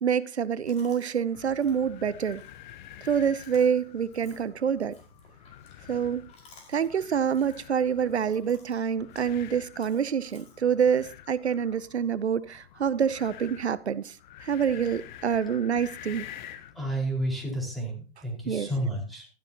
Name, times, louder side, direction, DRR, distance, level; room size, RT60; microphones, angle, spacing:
voice 1, 0.0-2.4 3.0-5.0 5.9-6.3 6.7-16.3 18.5-18.7, right 7 dB, 90° right, 0.7 m, -27 dB
Chewing mastication, 0.7-11.1, left 3 dB, 20° left, 5.0 m, -58 dB
sound 1, 1.3-16.8, left 11 dB, 45° left, 1.0 m, -48 dB
voice 2, 16.7-19.3, right 1 dB, ahead, 4.7 m, -31 dB
15.5 x 12.5 x 2.9 m
hypercardioid pair, 120°, 32 cm